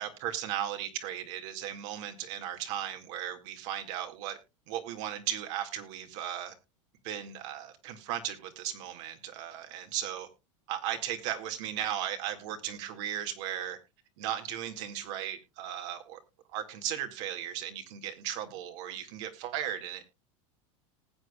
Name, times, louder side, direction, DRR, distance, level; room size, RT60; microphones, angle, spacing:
voice 1, 0.0-4.4 4.7-6.5 7.0-10.3 10.7-13.8 14.2-16.2 16.5-20.0, right 10 dB, 65° right, 6 dB, 2.1 m, -36 dB
19.5 x 8.0 x 2.4 m, 0.25 s
hypercardioid pair, 105°, 17 cm